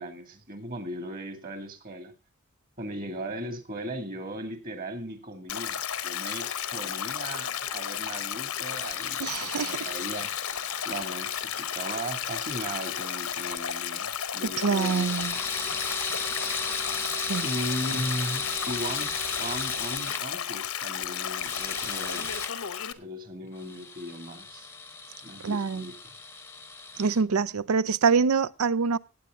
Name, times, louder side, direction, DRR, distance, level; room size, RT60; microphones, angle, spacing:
voice 1, 0.0-2.1 2.8-10.3 10.8-15.3 17.4-22.3 23.0-24.7 25.2-26.1, right 1 dB, 40° right, 2.2 m, -37 dB
Stream, 5.5-22.9, left 9 dB, 75° left, 0.9 m, -33 dB
sound 1, 8.6-13.9 14.7-20.2 21.3-22.5 23.6-27.2, left 3 dB, 10° left, 0.8 m, -37 dB
voice 2, 9.2-9.9 14.6-15.4 17.2-17.5 25.4-25.9 27.0-29.0, right 5 dB, 80° right, 0.5 m, -25 dB
16.5 x 8.8 x 3.7 m
head